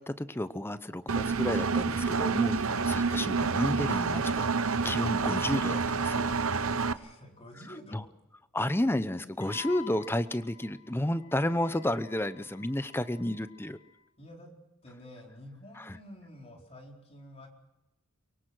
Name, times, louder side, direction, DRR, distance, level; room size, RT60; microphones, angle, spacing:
voice 1, 0.0-6.3 7.9-8.0 8.5-13.8 15.8-16.0, left 1 dB, 10° left, 13 dB, 0.8 m, -31 dB
Engine, 1.1-6.9, right 4 dB, 70° right, 0.9 m, -28 dB
voice 2, 6.7-8.1 14.2-14.5 14.8-17.5, left 1 dB, 30° left, 1 dB, 4.5 m, -49 dB
Wind instrument woodwind instrument, 9.4-14.0, left 11 dB, 90° left, 2.3 m, -50 dB
24.0 x 23.0 x 6.2 m, 0.97 s
head